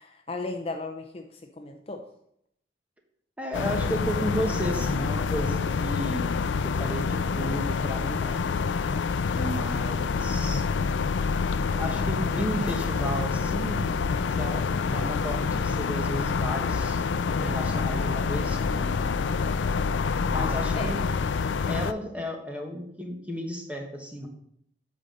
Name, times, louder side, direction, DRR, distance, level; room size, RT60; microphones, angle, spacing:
voice 1, 0.0-2.0 20.7-21.0, left 3 dB, 30° left, 4 dB, 0.6 m, -36 dB
voice 2, 3.4-8.4 9.3-10.6 11.8-13.9 14.2-17.0 17.3-19.0 20.3-21.0 21.6-24.3, equal, 10° right, 1 dB, 1.2 m, -33 dB
sound 1, 3.5-21.9, left 5 dB, 85° left, 0.4 m, -27 dB
8.6 x 4.2 x 6.5 m, 0.72 s
head